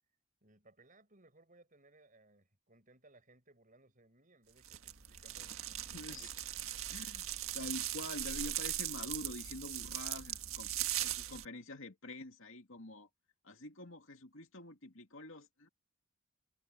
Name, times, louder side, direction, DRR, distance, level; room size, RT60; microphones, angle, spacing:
voice 1, 0.4-5.6 5.9-6.3 6.6-6.9, right 2 dB, 40° right, 6.2 m, -64 dB
sound 1, 4.6-11.5, right 12 dB, 75° right, 1.6 m, -39 dB
voice 2, 5.9-6.3 6.9-13.1 13.4-15.7, left 1 dB, 65° left, 2.5 m, -47 dB
head